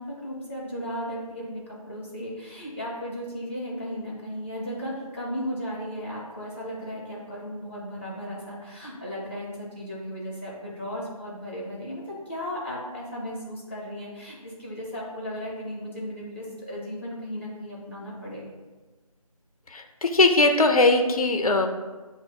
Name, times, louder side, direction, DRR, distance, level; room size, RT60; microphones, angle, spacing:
voice 1, 0.0-18.4, equal, 20° left, -6 dB, 0.7 m, -35 dB
voice 2, 19.7-21.7, left 2 dB, 70° left, 5 dB, 0.5 m, -20 dB
7.0 x 2.4 x 2.2 m, 1.3 s
figure-of-eight pair, 170°, 19 cm